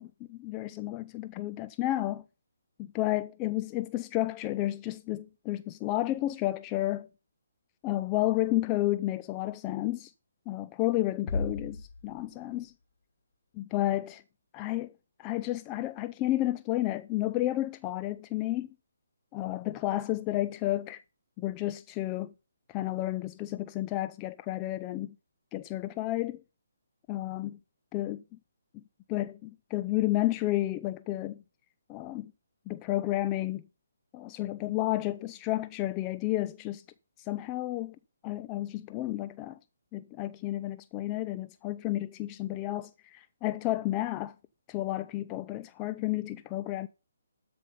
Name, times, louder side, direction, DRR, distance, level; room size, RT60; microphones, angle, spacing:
voice 1, 0.0-2.2 2.9-7.1 7.8-10.1 10.5-12.7 13.5-14.2 14.5-14.9 15.2-18.7 19.3-21.0 21.4-22.3 22.7-25.1 25.5-26.4 27.1-27.6 27.9-28.2 28.7-28.8 29.1-31.4 31.9-32.3 32.7-33.6 34.1-36.8 37.2-38.0 38.2-39.6 39.9-44.3 44.7-46.9, left 15 dB, 20° left, 0.5 m, -31 dB
sound 1, 11.3-12.7, left 3 dB, 50° left, 1.5 m, -35 dB
13.0 x 5.2 x 5.5 m
hypercardioid pair, 155°, 0 cm